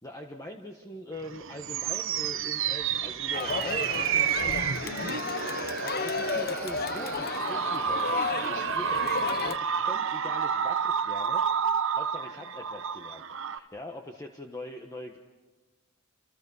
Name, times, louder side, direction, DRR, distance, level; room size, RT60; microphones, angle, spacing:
voice 1, 0.0-15.2, left 1 dB, 15° left, 2 dB, 1.4 m, -43 dB
sound 1, 1.2-13.6, right 7 dB, 60° right, 0.9 m, -30 dB
Crowd, 3.3-9.6, left 4 dB, 45° left, 0.9 m, -33 dB
28.5 x 28.0 x 5.6 m, 1.2 s
head